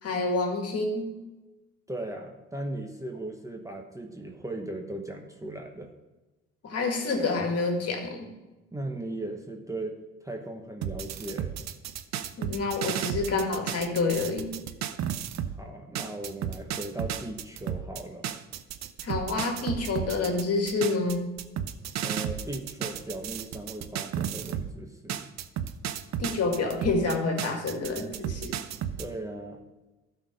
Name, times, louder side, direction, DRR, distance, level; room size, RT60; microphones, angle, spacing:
voice 1, 0.0-1.1 6.6-8.3 12.4-14.5 19.0-21.3 26.2-28.5, left 3 dB, 50° left, 3 dB, 2.0 m, -28 dB
voice 2, 1.9-5.9 8.7-11.6 15.6-18.3 22.0-25.2 28.9-29.6, right 1 dB, 10° right, 3 dB, 1.0 m, -37 dB
sound 1, 10.8-15.6 16.0-24.7 25.1-29.1, right 10 dB, 55° right, 0.7 m, -33 dB
12.0 x 4.4 x 5.2 m, 1.1 s
supercardioid pair, 65°, 32 cm